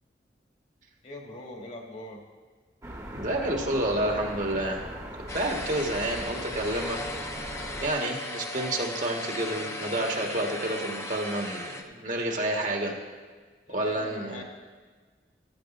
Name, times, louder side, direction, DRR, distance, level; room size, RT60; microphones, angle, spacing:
voice 1, 1.0-2.2 13.7-14.4, left 1 dB, 40° left, 1 dB, 1.6 m, -42 dB
sound 1, 2.8-7.9, right 1 dB, 20° right, 1.1 m, -39 dB
voice 2, 3.1-4.8 5.3-7.0 7.8-12.9 13.7-14.4, right 1 dB, 45° right, 1 dB, 1.4 m, -29 dB
sound 2, 5.3-11.8, left 2 dB, 15° left, 0.5 m, -37 dB
14.5 x 13.5 x 2.5 m, 1.4 s
head